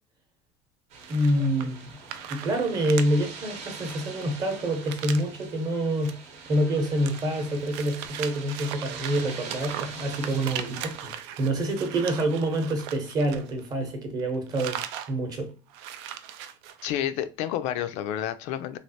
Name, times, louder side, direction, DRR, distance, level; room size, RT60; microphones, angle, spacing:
sound 1, 0.9-11.0, right 5 dB, 60° right, 0.8 m, -43 dB
sound 2, 1.0-1.8 2.1-3.1 3.4-3.5 3.8-5.4 5.9-6.1 6.5-13.9 14.2-15.1 15.4-15.5 15.7-17.0, right 10 dB, 90° right, 0.4 m, -39 dB
voice 1, 1.1-1.9 2.3-6.2 6.5-14.8 15.1-15.5, right 1 dB, 30° right, 0.8 m, -27 dB
voice 2, 16.8-18.8, left 11 dB, 60° left, 0.4 m, -30 dB
3.1 x 2.4 x 2.7 m
cardioid pair, 150°, 13 cm